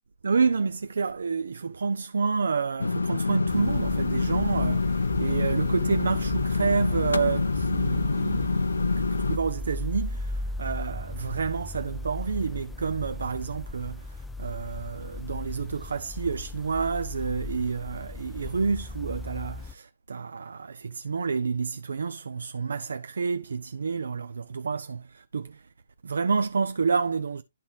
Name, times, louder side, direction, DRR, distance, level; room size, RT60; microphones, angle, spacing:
voice 1, 0.2-25.7 26.0-27.4, right 5 dB, 70° right, 0.5 m, -29 dB
sound 1, 2.8-9.4, left 3 dB, 80° left, 0.4 m, -26 dB
sound 2, 3.5-19.7, left 2 dB, 5° left, 0.3 m, -37 dB
11.5 x 4.0 x 3.1 m
figure-of-eight pair, 130°, 0 cm